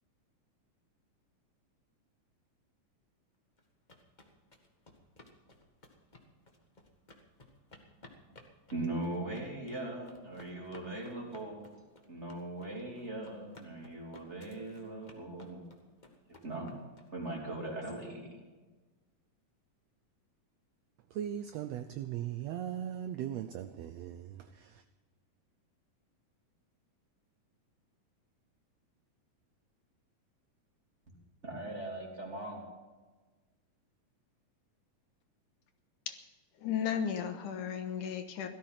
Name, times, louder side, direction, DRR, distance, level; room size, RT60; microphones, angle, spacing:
sound 1, 3.6-17.3, left 2 dB, 30° left, 0.8 m, -57 dB
voice 1, 8.7-11.8 12.1-15.6 16.3-16.8 17.1-18.4 31.4-32.6, right 2 dB, 20° right, 3.2 m, -40 dB
voice 2, 21.1-24.8, right 10 dB, 85° right, 1.4 m, -39 dB
voice 3, 36.6-38.5, left 8 dB, 75° left, 2.7 m, -34 dB
17.5 x 13.5 x 5.8 m
omnidirectional pair, 3.7 m